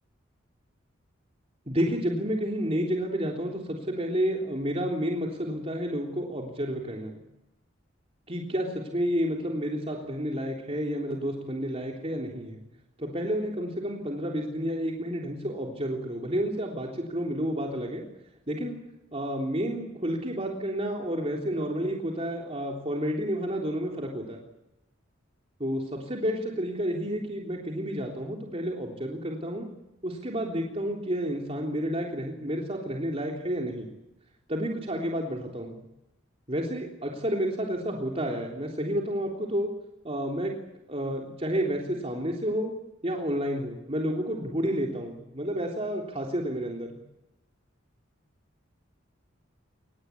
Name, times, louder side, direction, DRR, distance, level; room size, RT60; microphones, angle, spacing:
voice 1, 1.7-7.1 8.3-12.6 13.0-18.0 18.5-18.8 19.1-24.4 25.6-29.7 30.0-33.9 34.5-35.8 36.5-39.7 40.0-40.5 40.9-42.7 43.0-47.0, equal, 30° right, 0 dB, 3.5 m, -30 dB
24.0 x 20.0 x 8.6 m, 0.90 s
head